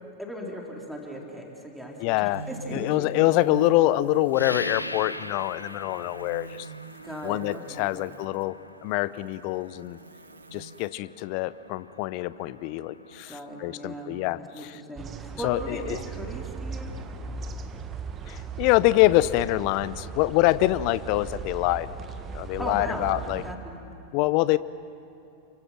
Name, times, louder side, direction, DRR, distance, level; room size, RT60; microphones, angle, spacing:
voice 1, 0.2-3.4 7.0-8.0 13.3-14.1 14.5-16.9 22.6-23.8, equal, ahead, -1 dB, 3.9 m, -37 dB
voice 2, 2.0-2.4 2.7-6.7 7.2-10.0 10.5-14.8 15.4-16.0 18.3-21.9 22.3-23.4 24.1-24.6, left 17 dB, 45° left, 18 dB, 0.6 m, -25 dB
sound 1, 2.3-8.4 9.0-10.9, right 6 dB, 70° right, 0.7 m, -43 dB
sound 2, 4.3-14.6, left 1 dB, 85° left, 0.7 m, -42 dB
sound 3, 15.0-23.5, right 5 dB, 25° right, 1.3 m, -38 dB
29.0 x 24.0 x 6.0 m, 2.6 s
figure-of-eight pair, 90°, 0 cm